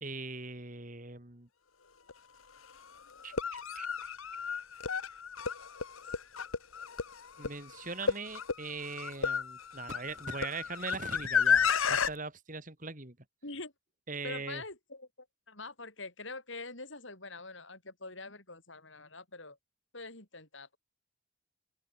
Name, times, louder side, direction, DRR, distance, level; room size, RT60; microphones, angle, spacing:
voice 1, 0.0-1.5 3.2-3.3 3.7-4.1 7.4-13.2 14.1-14.6, right 3 dB, 40° right, 2.8 m, -41 dB
sound 1, 2.1-2.2 3.2-12.1, left 6 dB, 85° left, 1.4 m, -32 dB
voice 2, 14.2-19.6 19.9-20.8, left 3 dB, 65° left, 6.9 m, -45 dB
open air
head